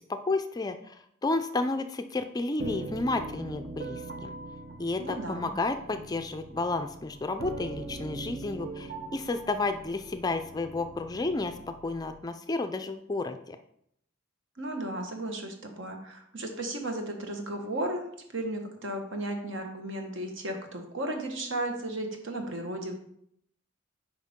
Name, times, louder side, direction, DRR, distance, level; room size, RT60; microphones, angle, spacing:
voice 1, 0.0-4.3 4.8-13.6, left 3 dB, 20° left, 8 dB, 0.4 m, -31 dB
sound 1, 2.6-12.2, right 2 dB, 50° right, 0.7 m, -41 dB
voice 2, 5.0-5.5 14.6-18.0 18.3-22.9, right 1 dB, 65° right, 3 dB, 1.4 m, -34 dB
9.2 x 5.2 x 3.6 m, 0.72 s
head